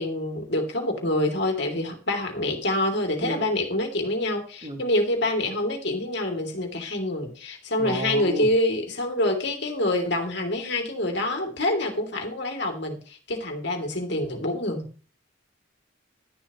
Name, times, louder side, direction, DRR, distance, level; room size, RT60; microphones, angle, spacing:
voice 1, 0.0-14.9, left 1 dB, 55° left, 3 dB, 3.0 m, -26 dB
voice 2, 7.8-8.5, right 1 dB, 30° right, 3 dB, 2.2 m, -32 dB
12.5 x 11.0 x 3.1 m, 0.39 s
head